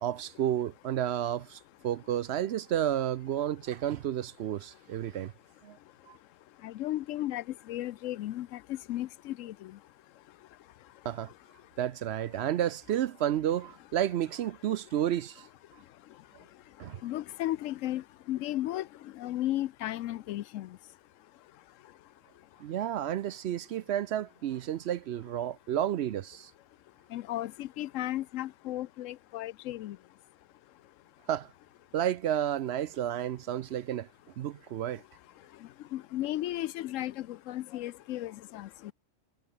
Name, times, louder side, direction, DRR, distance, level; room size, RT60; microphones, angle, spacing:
voice 1, 0.0-5.3 5.6-5.8 6.1-6.2 11.0-11.3 11.8-15.5 16.8-17.0 22.6-26.5 31.3-31.5 31.9-34.1 34.4-35.0, right 11 dB, 65° right, 0.8 m, -31 dB
voice 2, 6.6-9.8 17.0-20.7 27.1-30.0 35.9-38.9, left 14 dB, 80° left, 0.9 m, -35 dB
omnidirectional pair, 1.3 m